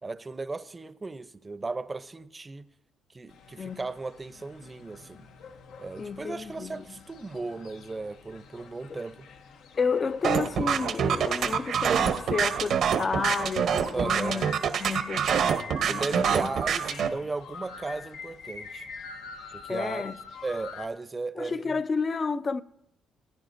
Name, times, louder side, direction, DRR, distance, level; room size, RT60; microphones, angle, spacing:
voice 1, 0.0-2.7 3.1-5.3 5.8-9.3 10.4-10.5 13.9-14.5 15.8-18.8 19.5-20.1 20.4-21.8, right 3 dB, 25° right, 0.6 m, -36 dB
sound 1, 3.3-20.9, left 5 dB, 80° left, 0.8 m, -46 dB
voice 2, 3.6-3.9 6.0-6.8 8.9-9.0 9.7-14.5 14.8-16.5 19.7-20.2 21.3-22.6, left 5 dB, 40° left, 0.4 m, -31 dB
sound 2, 10.2-17.1, right 7 dB, 70° right, 0.8 m, -25 dB
18.5 x 9.4 x 2.6 m
cardioid pair, 90°, 0 cm